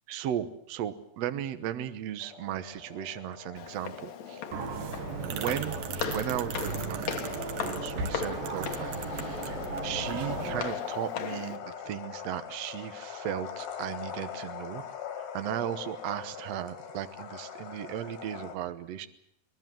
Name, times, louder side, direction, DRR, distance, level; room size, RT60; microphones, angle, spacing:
voice 1, 0.1-4.4 5.3-5.8 6.1-7.2 7.6-9.0 9.5-14.8 15.2-19.1, right 11 dB, 90° right, 10 dB, 1.4 m, -36 dB
sound 1, 2.2-18.6, left 8 dB, 75° left, 4.6 m, -41 dB
Walk footsteps, 3.6-11.6, left 8 dB, 60° left, 2.1 m, -39 dB
sound 2, 4.5-10.6, right 5 dB, 65° right, 3.0 m, -36 dB
22.0 x 21.0 x 7.7 m, 0.74 s
omnidirectional pair, 4.6 m